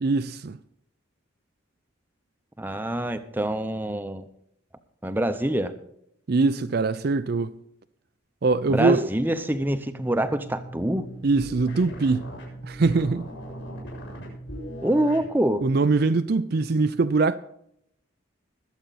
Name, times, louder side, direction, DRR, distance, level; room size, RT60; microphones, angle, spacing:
voice 1, 0.0-0.6 6.3-7.5 8.4-9.1 11.2-12.3 12.6-13.2 15.6-17.4, right 3 dB, 50° right, 0.5 m, -22 dB
voice 2, 2.6-4.2 5.0-5.7 8.7-11.1 14.8-15.6, right 1 dB, 10° right, 0.8 m, -25 dB
sound 1, 9.6-15.3, right 1 dB, 60° left, 6.7 m, -39 dB
21.5 x 8.1 x 4.1 m
head